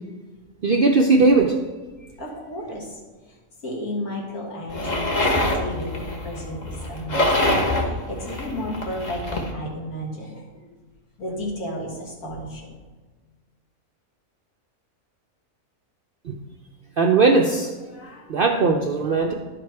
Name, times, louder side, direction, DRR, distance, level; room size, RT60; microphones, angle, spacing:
voice 1, 0.6-1.5 16.3-16.4 17.0-17.7 18.3-19.3, right 3 dB, 65° right, 2 dB, 0.5 m, -18 dB
voice 2, 2.2-3.4 3.6-10.7 11.2-12.8 17.9-18.3, equal, 80° left, -2 dB, 2.4 m, -33 dB
sound 1, 4.7-9.5, left 1 dB, 35° left, 1.0 m, -25 dB
11.0 x 5.0 x 4.6 m, 1.3 s
omnidirectional pair, 1.5 m